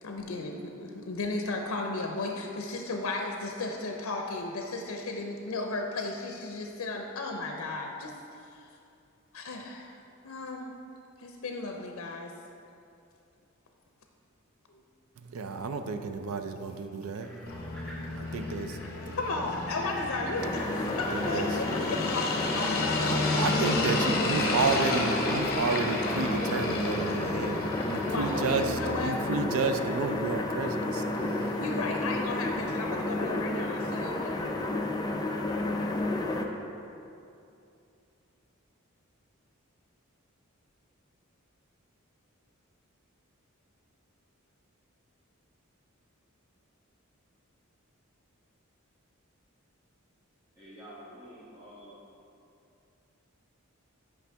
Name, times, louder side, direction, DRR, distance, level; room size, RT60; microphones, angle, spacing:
voice 1, 0.0-8.1 8.4-8.7 9.3-10.7 11.2-12.3 14.7-14.8 19.1-22.9 28.0-29.2 31.6-34.5, left 2 dB, 80° left, 2 dB, 0.5 m, -35 dB
voice 2, 15.2-19.1 21.1-21.5 23.0-31.6, right 4 dB, 85° right, 7 dB, 0.5 m, -32 dB
sound 1, 17.2-31.5, left 1 dB, ahead, 1.5 m, -50 dB
sound 2, 17.5-29.0, left 2 dB, 45° left, 0.8 m, -32 dB
sound 3, 20.4-36.5, left 2 dB, 20° left, 0.4 m, -31 dB
voice 3, 50.6-52.3, equal, 20° right, -11 dB, 1.2 m, -49 dB
8.6 x 5.2 x 3.4 m, 2.6 s
head